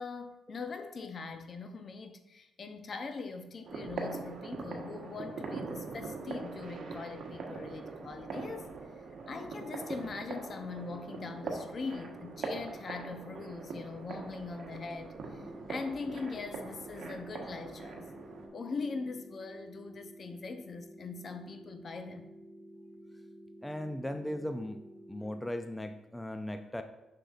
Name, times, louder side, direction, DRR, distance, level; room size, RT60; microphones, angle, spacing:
voice 1, 0.0-15.4 15.7-18.1 18.5-22.3, left 4 dB, 50° left, 8 dB, 0.6 m, -41 dB
sound 1, 3.6-18.5, right 4 dB, 60° right, 1.2 m, -42 dB
sound 2, 15.3-25.3, equal, 25° left, 1.1 m, -52 dB
voice 2, 23.6-26.8, left 1 dB, 10° left, 7 dB, 0.5 m, -38 dB
6.5 x 6.3 x 2.5 m, 0.98 s
cardioid pair, 75°, 0 cm